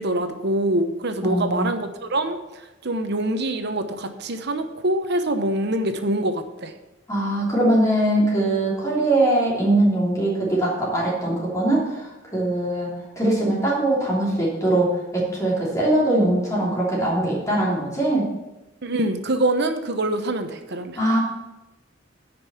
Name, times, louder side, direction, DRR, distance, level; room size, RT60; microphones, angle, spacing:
voice 1, 0.0-2.4 2.8-6.7 18.8-21.0, right 1 dB, 60° right, 7 dB, 0.9 m, -24 dB
voice 2, 1.2-1.7 7.1-18.3 21.0-21.2, right 1 dB, 15° left, -5 dB, 3.0 m, -21 dB
10.5 x 5.4 x 6.9 m, 1.0 s
head